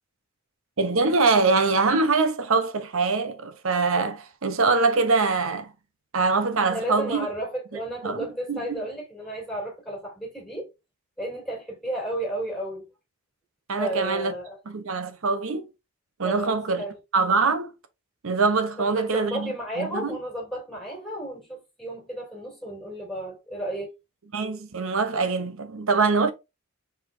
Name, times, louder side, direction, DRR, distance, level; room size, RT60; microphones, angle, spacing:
voice 1, 0.8-5.7 6.1-7.3 8.0-8.8 13.7-14.3 14.7-15.7 16.2-16.8 17.1-17.7 18.2-20.2 24.3-26.3, right 4 dB, 65° right, 0.8 m, -23 dB
voice 2, 6.7-10.7 11.2-12.9 13.8-14.6 16.2-17.0 18.8-23.9, right 1 dB, ahead, 2.8 m, -33 dB
4.8 x 4.1 x 2.6 m
head